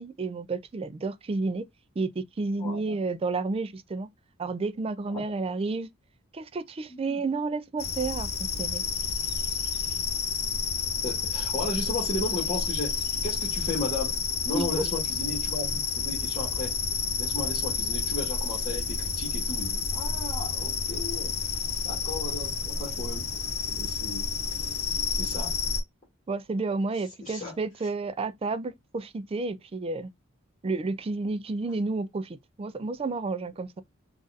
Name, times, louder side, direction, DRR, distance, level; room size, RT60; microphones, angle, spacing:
voice 1, 0.0-1.7 2.0-4.1 4.4-5.9 6.3-8.8 14.5-14.9 26.3-30.1 30.6-33.8, right 3 dB, 25° right, 0.3 m, -31 dB
voice 2, 2.6-2.9 5.1-5.2 6.9-7.2 11.0-14.2 14.4-16.8 17.2-21.4 21.8-23.3 23.6-24.3 25.2-25.5 27.2-27.5, left 2 dB, 35° left, 1.5 m, -35 dB
sound 1, 7.8-25.8, left 5 dB, 50° left, 0.9 m, -30 dB
3.9 x 2.5 x 2.5 m
head